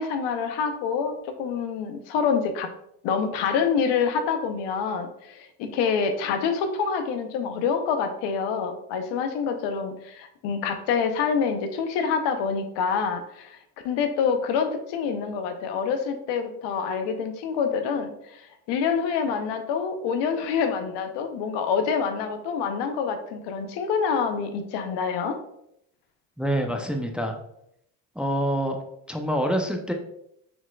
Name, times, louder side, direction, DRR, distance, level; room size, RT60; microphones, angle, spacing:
voice 1, 0.0-2.7 3.0-13.6 13.8-18.4 18.7-25.4, left 6 dB, 75° left, 6 dB, 0.8 m, -26 dB
voice 2, 26.4-27.4 28.2-28.8 29.1-29.9, equal, ahead, 3 dB, 0.5 m, -26 dB
4.9 x 3.9 x 2.3 m, 0.76 s
supercardioid pair, 75°, 42 cm